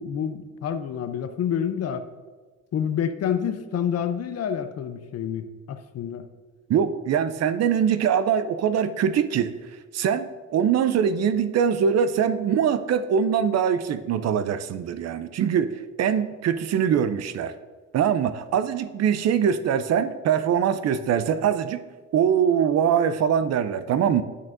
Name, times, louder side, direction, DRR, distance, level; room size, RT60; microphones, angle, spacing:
voice 1, 0.0-2.1 2.7-6.3, left 8 dB, 55° left, 10 dB, 0.6 m, -28 dB
voice 2, 6.7-9.5 9.9-17.5 17.9-21.8 22.1-24.2, right 8 dB, 60° right, 13 dB, 0.5 m, -23 dB
11.0 x 6.0 x 2.6 m, 1.3 s
cardioid pair, 90°, 30 cm